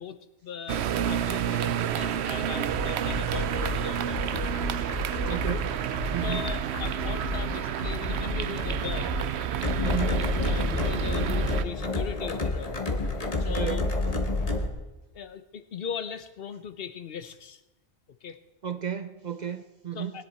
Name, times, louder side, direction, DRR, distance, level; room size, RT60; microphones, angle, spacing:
voice 1, 0.0-4.5 5.1-5.4 6.1-9.2 9.8-12.9 13.4-13.8 15.1-17.6 18.2-18.4 19.9-20.3, left 7 dB, 60° left, 0.9 m, -39 dB
sound 1, 0.7-11.6, right 9 dB, 75° right, 0.9 m, -30 dB
sound 2, 2.7-14.7, left 2 dB, 35° left, 1.4 m, -30 dB
voice 2, 5.3-5.7 6.1-6.5 9.8-10.3 13.5-13.9 18.6-20.2, right 8 dB, 50° right, 0.6 m, -33 dB
20.0 x 10.0 x 4.3 m
omnidirectional pair, 1.1 m